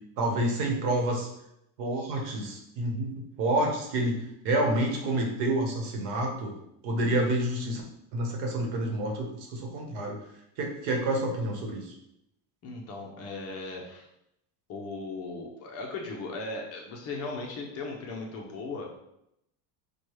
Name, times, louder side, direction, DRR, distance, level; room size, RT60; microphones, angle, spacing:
voice 1, 0.2-1.3 1.8-6.5 6.8-7.8 8.1-10.2 10.6-11.8, right 1 dB, 90° right, 1 dB, 1.1 m, -28 dB
voice 2, 12.6-14.1 14.7-18.9, left 3 dB, 35° left, 0 dB, 0.5 m, -37 dB
4.7 x 2.3 x 3.1 m, 0.80 s
cardioid pair, 170°, 46 cm